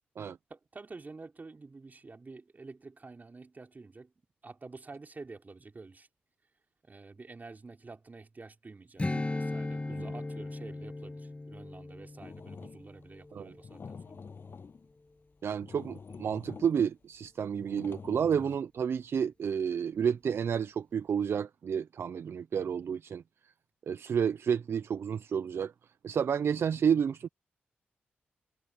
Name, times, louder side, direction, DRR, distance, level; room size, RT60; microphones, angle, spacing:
voice 1, 0.5-4.1 4.4-6.1 6.8-14.2, right 3 dB, 40° right, 4.0 m, -49 dB
Strum, 9.0-13.7 14.1-14.3, left 2 dB, 25° left, 7.1 m, -37 dB
sound 1, 12.2-13.1 13.6-14.9 15.4-15.5 15.6-16.9 17.6-18.6, left 5 dB, 55° left, 7.6 m, -47 dB
voice 2, 15.4-23.2 23.9-25.7 26.0-27.3, right 7 dB, 65° right, 0.6 m, -30 dB
supercardioid pair, 45°, 4 cm